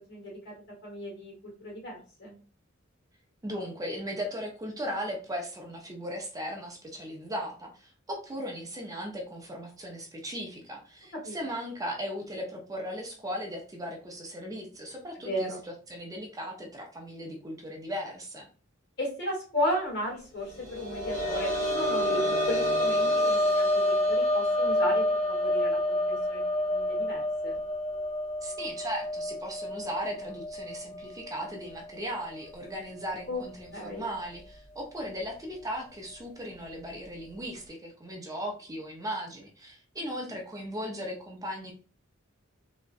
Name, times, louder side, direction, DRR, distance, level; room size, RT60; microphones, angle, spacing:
voice 1, 0.1-0.5 0.8-2.4 11.2-11.4 15.2-15.6 19.0-27.6 33.3-33.4 33.7-34.1, equal, 55° left, -1 dB, 1.4 m, -35 dB
voice 2, 3.4-18.5 28.4-41.7, equal, 15° right, 1 dB, 0.5 m, -37 dB
sound 1, 20.5-32.0 32.3-32.4 34.0-34.1, left 1 dB, 35° left, 1.2 m, -28 dB
3.5 x 2.1 x 2.4 m, 0.38 s
head